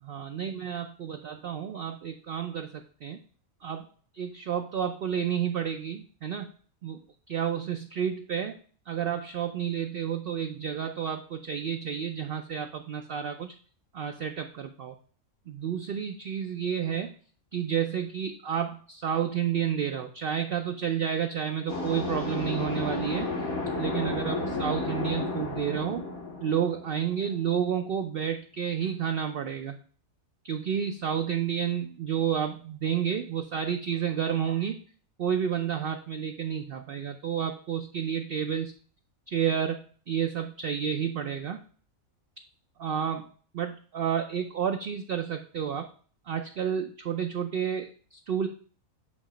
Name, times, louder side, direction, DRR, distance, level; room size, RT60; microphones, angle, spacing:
voice 1, 0.0-3.2 3.6-3.8 4.1-6.5 6.8-7.0 7.3-8.6 8.9-13.5 13.9-14.9 15.5-17.1 17.5-23.3 23.8-26.0 26.4-29.8 30.4-34.8 35.2-38.7 39.3-41.6 42.8-43.3 43.5-45.9 46.3-48.5, right 8 dB, 60° right, 5 dB, 0.6 m, -30 dB
sound 1, 21.7-27.4, left 2 dB, 85° left, 2.2 m, -32 dB
8.4 x 3.0 x 5.0 m, 0.43 s
omnidirectional pair, 1.5 m